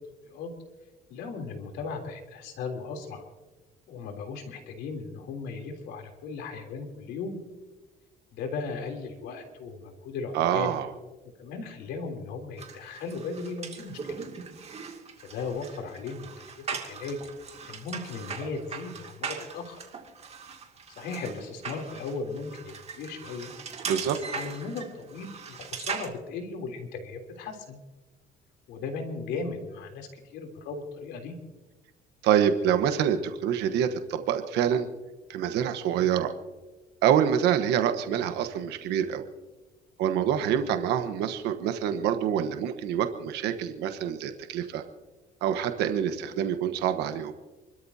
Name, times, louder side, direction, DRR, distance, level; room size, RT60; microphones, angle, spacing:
voice 1, 1.1-3.2 3.9-7.4 8.3-10.7 11.4-14.2 15.2-16.3 16.6-17.2 17.6-19.8 21.0-23.5 24.2-27.8 28.7-31.3, left 4 dB, 85° left, 3 dB, 3.4 m, -37 dB
voice 2, 10.3-10.9 23.9-24.2 32.2-34.9 35.3-36.3 37.0-39.3 40.0-44.8 45.4-47.3, right 9 dB, 85° right, 8 dB, 1.2 m, -26 dB
sound 1, 12.6-26.1, right 6 dB, 40° right, 2.4 m, -39 dB
28.5 x 13.5 x 2.8 m, 1.2 s
cardioid pair, 110°, 17 cm